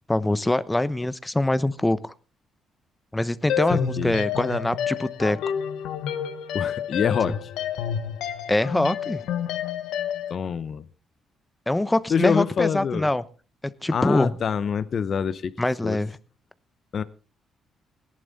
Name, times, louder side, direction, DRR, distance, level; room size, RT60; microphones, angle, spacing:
voice 1, 0.1-2.1 3.1-5.4 8.5-9.3 11.7-13.2 13.8-14.3 15.6-16.1, left 1 dB, 10° left, 0.9 m, -24 dB
sound 1, 3.5-10.4, left 8 dB, 85° left, 1.2 m, -29 dB
voice 2, 3.7-4.2 6.5-7.5 10.3-10.8 12.1-13.1 13.9-15.5 15.8-16.0 16.9-17.0, left 7 dB, 50° left, 0.8 m, -25 dB
17.5 x 11.0 x 4.1 m
cardioid pair, 90°, 0 cm